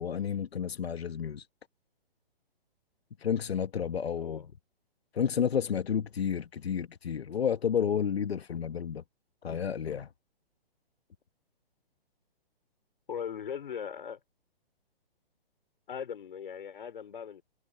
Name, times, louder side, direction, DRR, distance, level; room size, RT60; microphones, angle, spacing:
voice 1, 0.0-1.5 3.2-4.4 5.1-9.0 9.4-10.1, left 8 dB, 80° left, 1.2 m, -31 dB
voice 2, 13.1-14.2 15.9-17.4, left 7 dB, 55° left, 4.4 m, -39 dB
hypercardioid pair, 170°, 30 cm